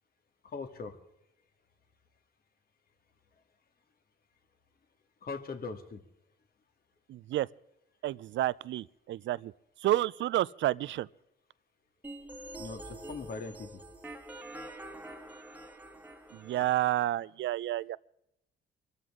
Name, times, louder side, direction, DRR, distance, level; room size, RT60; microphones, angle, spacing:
voice 1, 0.4-1.0 3.3-3.4 5.2-6.0 12.6-13.8, left 4 dB, 50° left, 2.0 m, -40 dB
voice 2, 7.1-7.5 8.0-9.5 9.8-11.1 16.3-18.0, right 14 dB, 70° right, 0.5 m, -30 dB
sound 1, 12.0-17.0, right 1 dB, 10° right, 1.6 m, -46 dB
25.5 x 14.0 x 3.7 m
cardioid pair, 90°, 20 cm